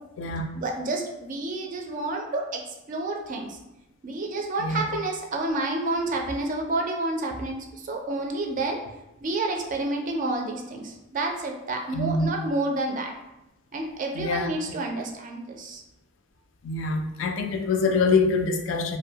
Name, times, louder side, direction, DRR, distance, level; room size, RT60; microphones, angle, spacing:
voice 1, 0.5-3.6 4.0-8.8 9.2-13.1 13.7-15.8, right 2 dB, 40° right, 2 dB, 0.4 m, -29 dB
voice 2, 11.9-12.3 14.1-14.5 16.6-19.0, left 3 dB, 70° left, 5 dB, 0.3 m, -25 dB
2.6 x 2.1 x 2.7 m, 0.94 s
head